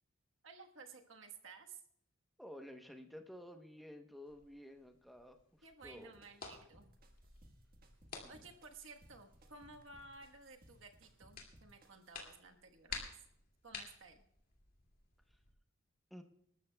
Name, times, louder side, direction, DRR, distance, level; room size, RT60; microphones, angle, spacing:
voice 1, 0.4-1.8 5.6-6.9 8.3-13.1 13.6-14.2, right 4 dB, 70° right, 4 dB, 1.3 m, -55 dB
voice 2, 2.4-6.1 8.2-8.5 15.3-15.4 16.1-16.2, left 1 dB, ahead, 4 dB, 0.9 m, -53 dB
sound 1, 4.3-15.5, left 4 dB, 45° left, 2.3 m, -54 dB
sound 2, 5.8-12.2, right 1 dB, 45° right, 1.4 m, -65 dB
26.5 x 13.0 x 2.3 m, 0.73 s
head